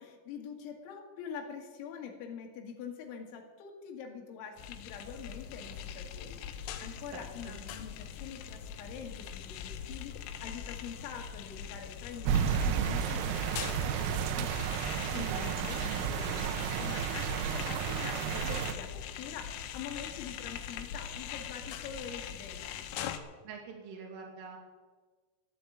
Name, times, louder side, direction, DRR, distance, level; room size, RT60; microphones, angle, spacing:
voice 1, 0.0-13.4 13.6-22.8, left 7 dB, 70° left, 2 dB, 4.0 m, -45 dB
sound 1, 4.6-23.2, left 9 dB, 90° left, 3.6 m, -42 dB
voice 2, 7.1-7.6 15.2-16.0 23.4-24.6, right 5 dB, 70° right, -1 dB, 5.4 m, -45 dB
sound 2, 12.3-18.7, right 8 dB, 90° right, 3.7 m, -32 dB
14.0 x 9.2 x 8.6 m, 1.4 s
omnidirectional pair, 6.0 m